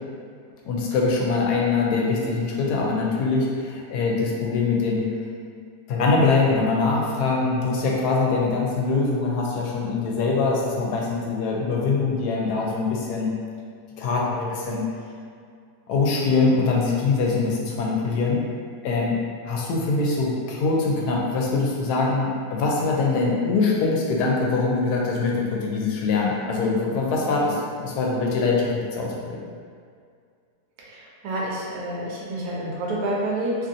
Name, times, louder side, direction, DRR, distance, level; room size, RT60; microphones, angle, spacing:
voice 1, 0.6-5.1 5.9-13.3 14.0-14.9 15.9-18.4 18.8-19.2 19.4-29.4, left 3 dB, 85° left, -3 dB, 1.1 m, -23 dB
voice 2, 30.8-33.6, right 1 dB, 80° right, -4 dB, 1.1 m, -28 dB
2.8 x 2.6 x 2.5 m, 2.2 s
omnidirectional pair, 1.7 m